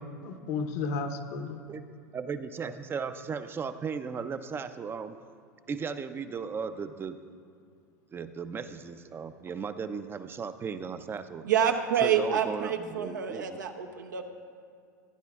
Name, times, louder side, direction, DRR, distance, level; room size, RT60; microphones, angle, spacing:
voice 1, 0.2-1.6, left 4 dB, 60° left, 5 dB, 1.0 m, -33 dB
voice 2, 2.1-5.2 5.7-7.2 8.1-11.4 12.0-13.6, right 6 dB, 25° right, 11 dB, 0.5 m, -36 dB
voice 3, 11.4-14.2, right 8 dB, 80° right, 4 dB, 0.9 m, -27 dB
16.5 x 9.8 x 2.4 m, 2.3 s
hypercardioid pair, 95°, 10 cm